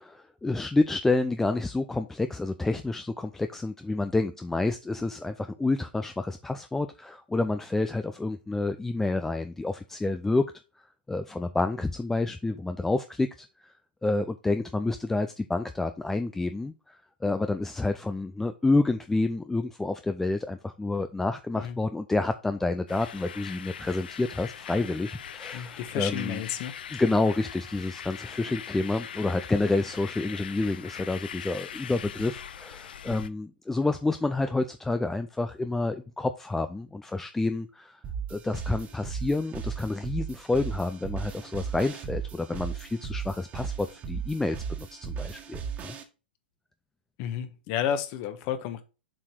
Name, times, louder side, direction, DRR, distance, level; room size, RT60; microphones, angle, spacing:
voice 1, 0.0-10.5 11.1-13.7 14.0-26.4 26.9-38.0 38.3-46.0, left 2 dB, 5° left, 0.4 m, -29 dB
sound 1, 22.9-33.3, left 8 dB, 65° left, 0.6 m, -41 dB
voice 2, 25.5-26.7 47.2-48.8, left 9 dB, 40° left, 1.3 m, -31 dB
sound 2, 38.0-46.0, right 7 dB, 25° right, 1.6 m, -36 dB
7.5 x 4.6 x 4.5 m
figure-of-eight pair, 110°, 5 cm